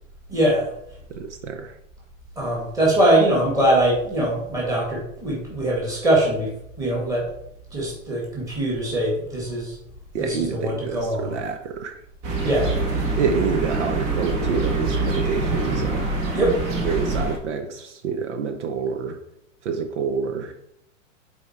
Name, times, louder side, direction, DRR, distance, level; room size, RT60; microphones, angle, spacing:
voice 1, 0.3-0.7 2.4-7.3 7.7-9.8 10.2-11.4 12.4-12.7 16.3-16.6, right 1 dB, 10° right, -4 dB, 2.0 m, -22 dB
voice 2, 1.1-1.7 10.1-12.0 13.2-16.1 16.8-19.2 19.6-20.5, right 5 dB, 60° right, 5 dB, 0.9 m, -27 dB
sound 1, 12.2-17.4, right 3 dB, 30° right, 1.3 m, -25 dB
7.0 x 4.5 x 4.5 m, 0.76 s
hypercardioid pair, 160°, 39 cm